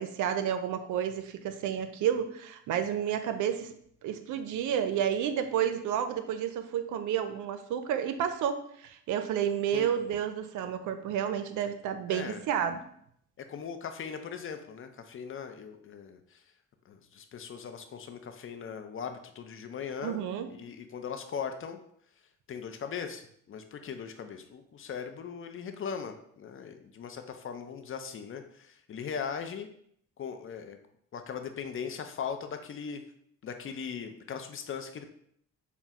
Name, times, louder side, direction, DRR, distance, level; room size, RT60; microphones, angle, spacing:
voice 1, 0.0-3.7 4.0-12.8 20.0-20.5, right 9 dB, 80° right, 9 dB, 0.5 m, -31 dB
voice 2, 12.1-12.4 13.4-16.4 16.9-20.2 20.5-21.8 22.5-29.7 30.2-30.8 31.1-33.0 33.4-35.1, left 7 dB, 45° left, 7 dB, 0.5 m, -39 dB
5.8 x 2.1 x 3.5 m, 0.68 s
cardioid pair, 90°, 30 cm